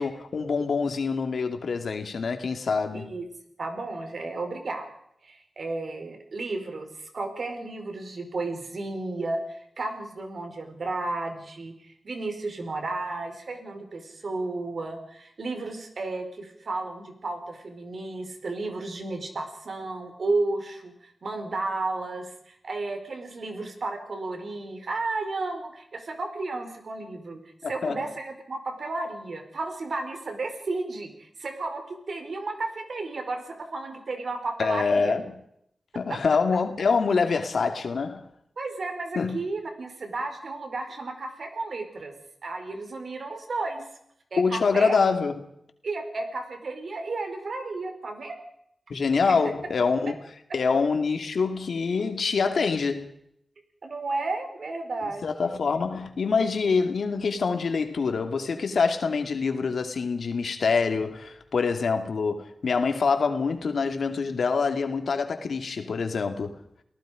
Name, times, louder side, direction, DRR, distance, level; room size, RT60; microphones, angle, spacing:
voice 1, 0.0-3.1 27.6-28.1 34.6-35.2 35.9-38.2 39.1-39.4 44.4-45.3 48.9-50.1 50.5-53.1 55.2-66.5, left 5 dB, 80° left, 2.5 m, -25 dB
voice 2, 2.9-3.3 3.6-4.9 5.2-27.4 27.6-35.1 36.1-36.2 38.6-42.1 42.4-43.8 44.3-45.0 45.8-48.4 49.3-49.4 53.8-55.5, right 3 dB, 70° right, 4.8 m, -33 dB
29.5 x 18.5 x 5.2 m
cardioid pair, 55°, 0 cm